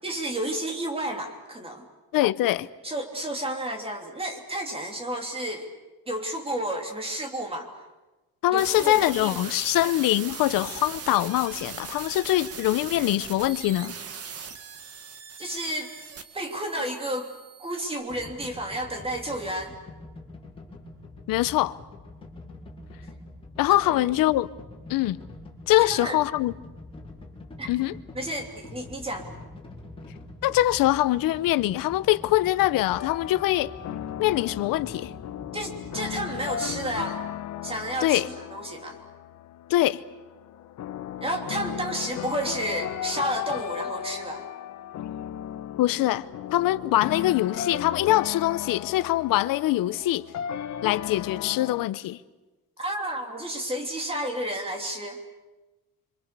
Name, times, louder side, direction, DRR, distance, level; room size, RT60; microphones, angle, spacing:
voice 1, 0.0-1.8 2.8-5.7 6.1-7.7 8.5-9.5 15.4-15.9 16.3-17.3 17.6-19.7 24.0-24.1 25.7-26.2 27.6-27.7 28.1-29.3 35.5-37.2 37.6-39.0 41.2-44.4 52.8-55.2, right 1 dB, 15° right, 3.2 m, -31 dB
voice 2, 2.1-2.7 8.4-13.9 21.3-21.8 23.6-24.5 24.9-25.2 25.7-26.5 27.7-27.9 30.4-33.7 34.2-35.1 38.0-38.3 39.7-40.0 45.8-50.2 50.8-52.2, left 15 dB, 85° left, 0.9 m, -23 dB
sound 1, 8.6-17.9, right 6 dB, 45° right, 1.9 m, -40 dB
sound 2, 18.1-37.1, left 2 dB, 15° left, 4.3 m, -45 dB
sound 3, 33.0-51.9, left 10 dB, 55° left, 1.1 m, -36 dB
27.0 x 25.5 x 6.9 m
cardioid pair, 155°, 33 cm